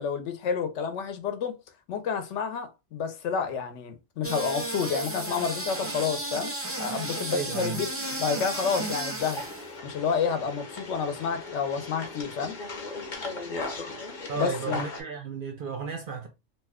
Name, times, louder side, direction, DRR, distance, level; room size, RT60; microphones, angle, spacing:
voice 1, 0.0-1.6 1.9-6.5 6.8-7.9 8.2-9.4 9.8-12.6 14.3-14.8, left 6 dB, 70° left, 0.9 m, -29 dB
sound 1, 4.2-9.7, right 2 dB, 15° right, 0.5 m, -33 dB
voice 2, 7.3-7.8 14.3-16.3, right 5 dB, 55° right, 0.6 m, -33 dB
sound 2, 9.2-15.0, left 3 dB, 45° left, 0.8 m, -37 dB
2.9 x 2.2 x 3.4 m
omnidirectional pair, 1.3 m